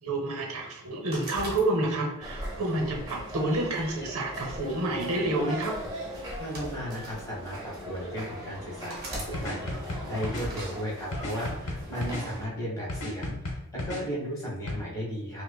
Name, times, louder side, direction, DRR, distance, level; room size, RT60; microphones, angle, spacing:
voice 1, 0.0-5.7, right 2 dB, 70° right, 1 dB, 0.8 m, -29 dB
sound 1, 1.1-2.2 2.8-4.0 4.9-5.2 6.2-7.3 8.0-8.1 8.9-9.3 10.3-10.6, right 1 dB, 45° right, 1.1 m, -40 dB
sound 2, 2.2-12.5, equal, 15° right, 0.7 m, -39 dB
voice 2, 6.4-15.4, equal, 15° left, -6 dB, 1.2 m, -35 dB
sound 3, 9.3-10.5 11.1-12.3 12.9-14.0 14.7-14.8, left 1 dB, 70° left, 0.8 m, -34 dB
5.7 x 2.1 x 2.3 m, 0.87 s
head